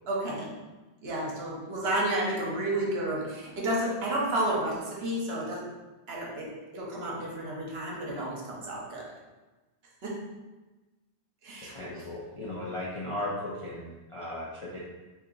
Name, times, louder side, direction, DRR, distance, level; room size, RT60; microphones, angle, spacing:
voice 1, 0.1-0.5 1.0-5.7 6.1-9.1 10.0-10.2 11.4-12.0, right 1 dB, 65° right, -3 dB, 1.0 m, -31 dB
voice 2, 11.6-14.8, left 1 dB, 50° left, -6 dB, 0.4 m, -36 dB
2.8 x 2.7 x 3.7 m, 1.2 s
omnidirectional pair, 1.1 m